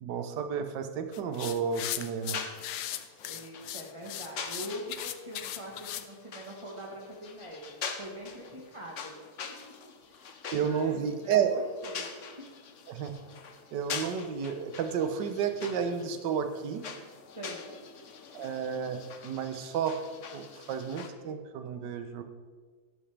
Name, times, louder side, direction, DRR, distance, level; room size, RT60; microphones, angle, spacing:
voice 1, 0.0-2.4 10.5-11.6 12.9-13.1 13.7-16.8 18.3-20.0 20.3-22.2, right 7 dB, 65° right, 8 dB, 1.5 m, -31 dB
sound 1, 1.1-6.1, left 12 dB, 75° left, 1.2 m, -38 dB
sound 2, 1.6-21.1, left 6 dB, 55° left, 0.9 m, -44 dB
voice 2, 3.2-9.2 10.1-12.5 17.3-17.7, equal, 20° right, -2 dB, 1.2 m, -43 dB
12.5 x 11.5 x 3.4 m, 1.5 s
omnidirectional pair, 2.2 m